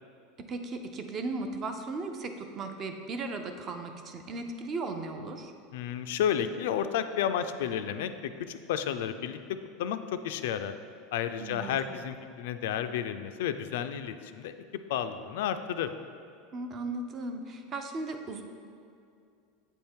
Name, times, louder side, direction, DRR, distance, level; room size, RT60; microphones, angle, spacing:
voice 1, 0.5-5.5 11.4-11.8 16.5-18.4, right 3 dB, 30° right, 6 dB, 0.5 m, -36 dB
voice 2, 5.7-10.0 10.2-10.7 11.1-15.9, left 9 dB, 80° left, 9 dB, 0.3 m, -32 dB
8.0 x 3.6 x 4.4 m, 2.4 s
supercardioid pair, 155°, 0 cm